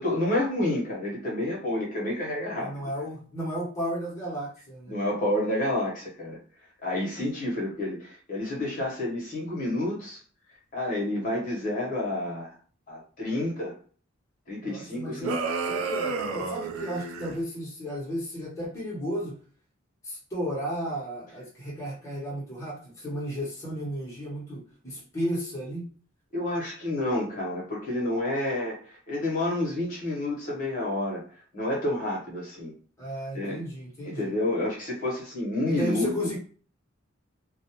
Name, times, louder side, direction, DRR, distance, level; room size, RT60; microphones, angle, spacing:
voice 1, 0.0-2.8 4.9-6.4 6.8-10.2 10.7-12.5 12.9-13.7 14.5-15.4 26.3-31.2 31.5-32.7 33.3-33.6 34.0-36.1, left 1 dB, 40° left, -3 dB, 0.9 m, -29 dB
voice 2, 2.6-4.9 14.6-15.3 15.7-19.4 20.0-25.8 33.0-34.3 35.7-36.4, equal, 15° left, -7 dB, 0.9 m, -33 dB
sound 1, 15.2-17.4, right 4 dB, 85° right, 0.4 m, -31 dB
2.4 x 2.0 x 2.8 m, 0.41 s
head